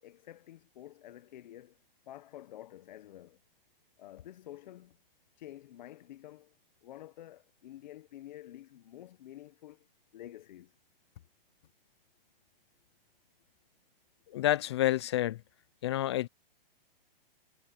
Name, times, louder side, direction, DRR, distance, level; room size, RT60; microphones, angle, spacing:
voice 1, 0.0-1.8 2.1-3.4 4.0-5.0 5.4-6.5 6.8-9.9 10.1-10.7, left 13 dB, 50° left, 1.1 m, -49 dB
voice 2, 14.3-15.4 15.8-16.3, left 13 dB, 30° left, 0.4 m, -28 dB
hypercardioid pair, 160°, 29 cm